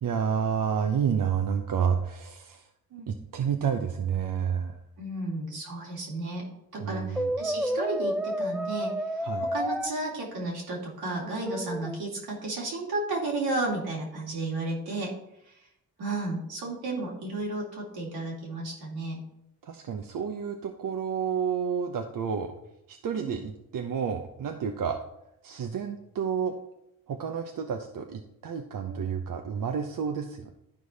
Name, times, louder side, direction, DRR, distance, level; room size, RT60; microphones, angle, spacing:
voice 1, 0.0-2.6 3.1-4.8 6.8-7.3 9.2-9.5 19.6-22.5 22.9-25.0 25.4-26.5 27.1-30.5, right 7 dB, 60° right, 4 dB, 0.9 m, -30 dB
voice 2, 5.0-6.4 6.7-8.9 9.4-15.1 16.0-19.2 23.2-23.4 28.9-29.1, right 2 dB, 85° right, -3 dB, 2.9 m, -33 dB
Brass instrument, 7.2-9.9 11.5-12.0, equal, ahead, 0.5 m, -30 dB
11.5 x 4.8 x 4.1 m, 0.80 s
supercardioid pair, 55°, 37 cm